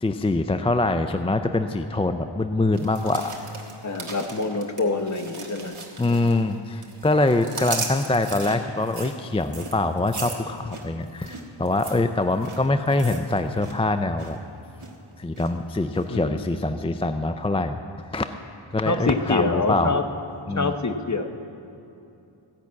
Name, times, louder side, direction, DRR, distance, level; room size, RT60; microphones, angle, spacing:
voice 1, 0.0-3.3 6.0-14.4 15.2-17.8 18.1-18.3 18.7-20.0 20.5-20.7, left 2 dB, 15° left, 8 dB, 0.3 m, -24 dB
sound 1, 2.7-6.5 6.8-13.8 14.0-14.4 14.8-15.5 15.9-16.0, right 4 dB, 80° right, 1.5 m, -37 dB
voice 2, 3.8-5.8 16.1-16.4 18.8-20.0 20.5-21.2, left 3 dB, 35° left, 7 dB, 0.8 m, -26 dB
15.0 x 5.9 x 8.2 m, 2.7 s
wide cardioid pair, 55°, 49 cm